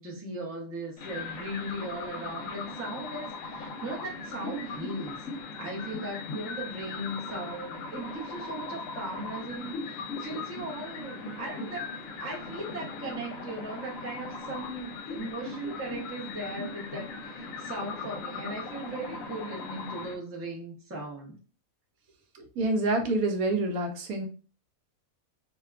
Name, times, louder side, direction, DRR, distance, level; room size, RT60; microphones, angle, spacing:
voice 1, 0.0-5.1 5.6-11.9 12.2-21.4, right 1 dB, 20° right, -2 dB, 0.4 m, -38 dB
sound 1, 1.0-20.1, left 3 dB, 70° left, 0.9 m, -39 dB
voice 2, 22.4-24.3, right 2 dB, 80° right, 4 dB, 1.0 m, -27 dB
2.7 x 2.2 x 2.3 m, 0.37 s
omnidirectional pair, 1.5 m